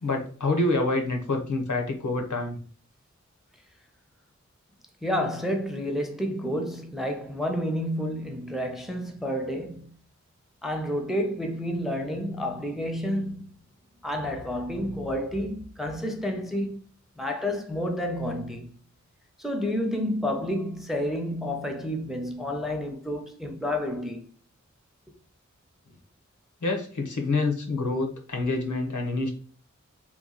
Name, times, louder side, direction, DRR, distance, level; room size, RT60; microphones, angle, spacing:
voice 1, 0.0-2.6 26.6-29.3, left 2 dB, 85° left, 0.8 m, -27 dB
voice 2, 5.0-9.9 10.6-13.5 14.0-16.8 17.2-18.7 19.4-24.3, equal, ahead, 0.6 m, -30 dB
2.9 x 2.3 x 3.7 m
wide cardioid pair, 50°, 30 cm